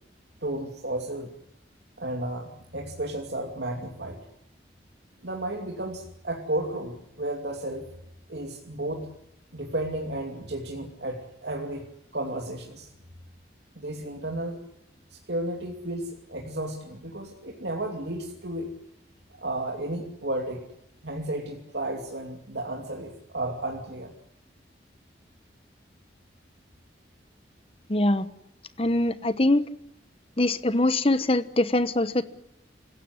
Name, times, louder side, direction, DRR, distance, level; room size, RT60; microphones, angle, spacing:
voice 1, 0.4-1.3 2.0-4.2 5.2-7.9 8.3-9.1 9.5-12.9 13.8-14.6 15.3-18.7 19.4-20.6 21.0-24.1, right 1 dB, 70° right, 1 dB, 2.8 m, -33 dB
voice 2, 27.9-28.3 28.8-29.6 30.4-32.2, left 1 dB, 30° left, 13 dB, 1.1 m, -23 dB
27.5 x 16.5 x 9.6 m, 0.80 s
head